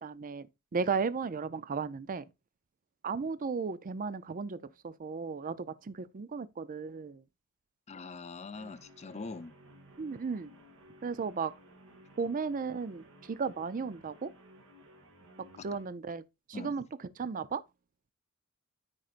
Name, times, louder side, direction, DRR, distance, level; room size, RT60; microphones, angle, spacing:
voice 1, 0.0-0.5 0.7-2.2 3.0-7.2 10.0-10.5 11.0-11.5 12.2-14.3 15.6-16.2 16.5-17.6, right 5 dB, 35° right, 0.4 m, -35 dB
voice 2, 7.9-9.5 15.6-15.7 16.5-16.7, left 3 dB, 30° left, 0.7 m, -43 dB
Guitar, 8.5-15.9, equal, 60° right, 2.7 m, -57 dB
13.5 x 5.1 x 2.5 m
head